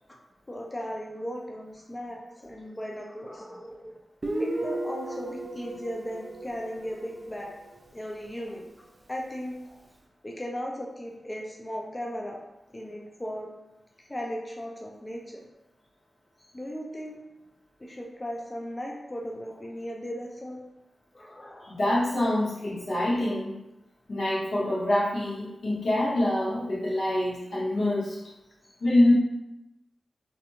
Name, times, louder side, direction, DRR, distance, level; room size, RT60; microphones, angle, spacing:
voice 1, 0.5-3.9 4.4-7.5 7.9-8.6 9.1-9.8 10.2-12.4 12.7-13.5 14.1-15.5 16.5-17.2 17.8-20.6 21.1-21.8 28.6-28.7, equal, 25° left, -1 dB, 0.5 m, -37 dB
Guitar, 4.2-7.7, right 1 dB, 40° right, 0.4 m, -35 dB
voice 2, 21.7-23.6 24.1-28.2 28.8-29.1, left 1 dB, 85° left, -7 dB, 0.9 m, -25 dB
2.6 x 2.4 x 2.8 m, 0.93 s
cardioid pair, 55°, 0 cm